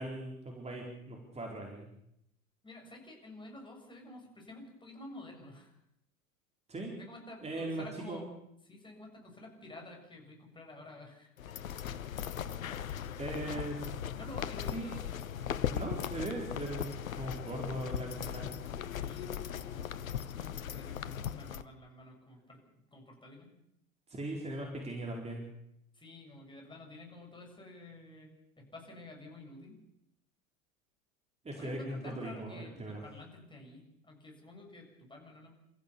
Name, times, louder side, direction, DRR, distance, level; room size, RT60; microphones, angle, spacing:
voice 1, 0.0-1.9 6.7-6.9 7.4-8.2 13.2-13.8 14.7-14.9 15.7-18.5 24.1-25.4 31.4-33.0, right 1 dB, 15° right, 0 dB, 4.2 m, -39 dB
voice 2, 2.6-5.7 7.0-8.3 8.7-11.3 14.1-15.0 18.9-19.9 20.4-22.6 22.9-23.5 25.9-28.3 28.6-29.8 31.5-35.5, left 2 dB, 10° left, 1 dB, 7.0 m, -50 dB
sound 1, 11.4-21.6, left 9 dB, 70° left, 1.1 m, -38 dB
29.5 x 14.5 x 6.9 m, 0.79 s
figure-of-eight pair, 85°, 43 cm